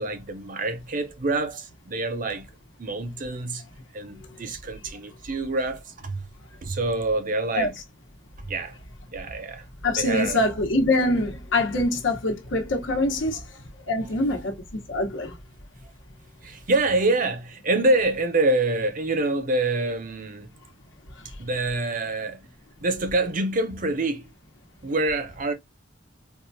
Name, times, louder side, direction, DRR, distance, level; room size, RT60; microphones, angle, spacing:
voice 1, 0.0-2.5 2.8-3.6 3.9-6.3 6.6-7.7 8.4-8.8 9.1-9.6 10.0-10.5 16.4-20.5 21.4-22.4 22.8-24.3 24.8-25.5, right 2 dB, 45° right, 0.6 m, -26 dB
voice 2, 9.8-13.4 13.9-14.6 14.9-15.4, left 2 dB, 80° left, 1.1 m, -24 dB
4.6 x 2.3 x 2.6 m
head